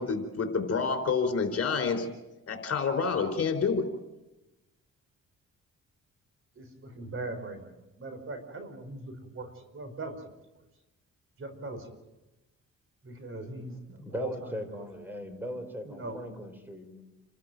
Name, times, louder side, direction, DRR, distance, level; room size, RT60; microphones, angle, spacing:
voice 1, 0.0-2.0 2.5-3.9, left 5 dB, 50° left, 6 dB, 4.5 m, -28 dB
voice 2, 6.6-7.7 8.0-10.2 11.4-11.9 13.0-13.7 14.1-14.3 15.9-16.2, right 3 dB, 45° right, 9 dB, 4.7 m, -39 dB
voice 3, 13.9-17.0, left 1 dB, 5° right, 8 dB, 4.9 m, -39 dB
29.0 x 13.5 x 9.1 m, 1.0 s
cardioid pair, 90°, 30 cm